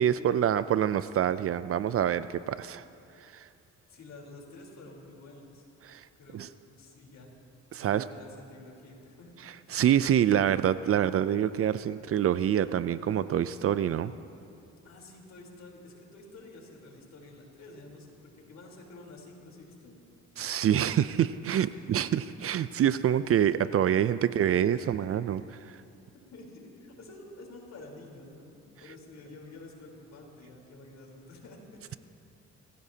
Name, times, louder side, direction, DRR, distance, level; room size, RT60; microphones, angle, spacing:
voice 1, 0.0-2.8 3.2-3.5 5.8-6.1 6.3-6.5 7.7-8.1 9.7-14.1 20.4-25.8, right 10 dB, 50° right, 15 dB, 0.5 m, -26 dB
voice 2, 3.9-5.6 6.2-6.4 6.7-7.3 7.8-9.3 14.8-20.0 21.5-21.9 26.1-28.5 28.8-32.0, left 2 dB, 65° left, -1 dB, 3.8 m, -49 dB
28.5 x 15.5 x 2.8 m, 2.6 s
cardioid pair, 90°, 30 cm